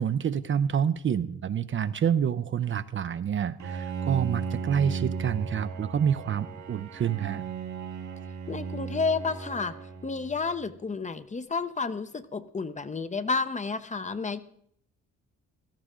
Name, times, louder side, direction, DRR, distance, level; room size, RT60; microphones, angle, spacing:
voice 1, 0.0-7.4, right 8 dB, 40° right, 12 dB, 0.6 m, -27 dB
Bowed string instrument, 3.6-10.7, right 5 dB, 75° right, 2.9 m, -36 dB
voice 2, 8.5-9.8 10.0-14.4, left 4 dB, 25° left, 12 dB, 0.7 m, -31 dB
16.5 x 13.0 x 3.7 m, 0.68 s
cardioid pair, 90°, 30 cm